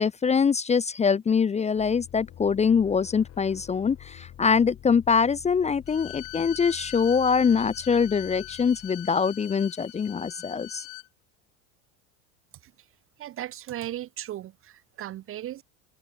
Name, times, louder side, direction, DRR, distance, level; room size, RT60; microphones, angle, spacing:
voice 1, 0.0-10.8, left 6 dB, 15° left, 0.6 m, -24 dB
sound 1, 1.7-9.2, left 11 dB, 40° left, 1.7 m, -48 dB
Bowed string instrument, 5.9-11.1, left 24 dB, 75° left, 3.1 m, -42 dB
voice 2, 13.2-15.6, right 13 dB, 35° right, 0.6 m, -36 dB
open air
hypercardioid pair, 95°, 39 cm